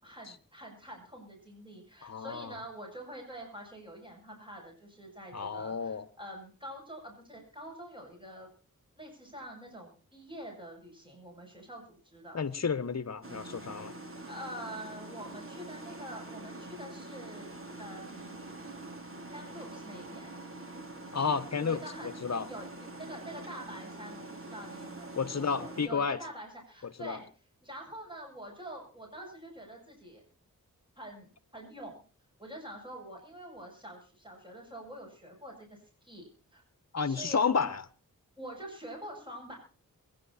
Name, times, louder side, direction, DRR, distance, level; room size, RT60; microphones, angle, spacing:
voice 1, 0.0-8.5 9.0-12.4 14.2-17.5 17.8-18.5 19.3-20.3 21.6-27.3 27.6-30.2 31.0-32.0 32.4-36.6 37.1-37.5 38.4-39.6, right 1 dB, 15° right, 7.3 m, -46 dB
voice 2, 2.0-2.6 5.3-6.1 12.3-13.9 21.1-22.5 25.1-26.2 27.0-27.2 36.9-37.8, left 5 dB, 50° left, 1.3 m, -31 dB
sound 1, 13.2-25.9, right 2 dB, 35° right, 3.5 m, -45 dB
22.5 x 10.5 x 4.3 m
cardioid pair, 50°, 35 cm